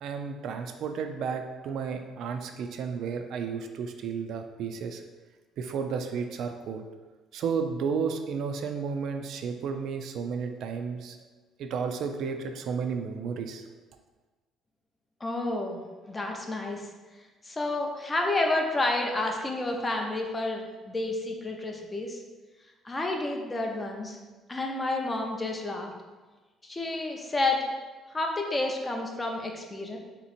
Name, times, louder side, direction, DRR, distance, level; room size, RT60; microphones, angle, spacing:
voice 1, 0.0-5.0 5.6-6.8 7.3-11.2 11.6-13.6, right 6 dB, 60° right, 6 dB, 0.3 m, -32 dB
voice 2, 15.2-15.8 16.1-16.9 17.4-22.2 22.8-24.2 24.5-25.9 26.6-27.6 28.1-30.0, left 2 dB, 15° left, 2 dB, 0.4 m, -30 dB
3.4 x 2.9 x 4.1 m, 1.3 s
cardioid pair, 165°, 0 cm